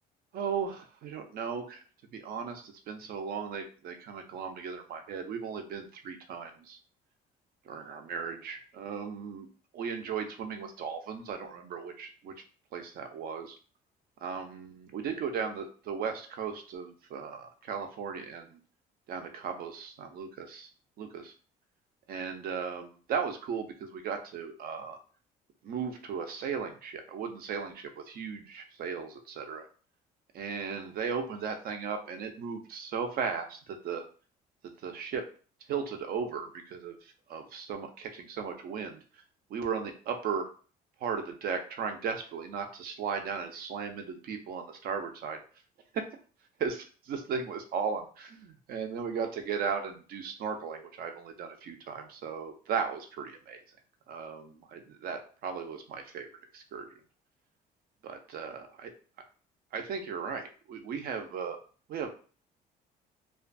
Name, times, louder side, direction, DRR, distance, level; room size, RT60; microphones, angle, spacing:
voice 1, 0.3-1.8 2.1-6.8 7.7-9.5 9.7-12.3 12.7-13.5 14.2-18.6 19.1-20.7 21.0-21.3 22.1-25.0 25.6-29.7 30.3-34.0 34.8-35.2 35.7-39.2 39.5-40.5 41.0-45.4 45.9-46.1 46.6-53.6 54.1-56.3 56.5-56.9 58.0-58.9 59.7-61.6 61.9-62.1, right 6 dB, 60° right, 6 dB, 0.5 m, -36 dB
2.4 x 2.3 x 2.5 m, 0.39 s
cardioid pair, 110°, 17 cm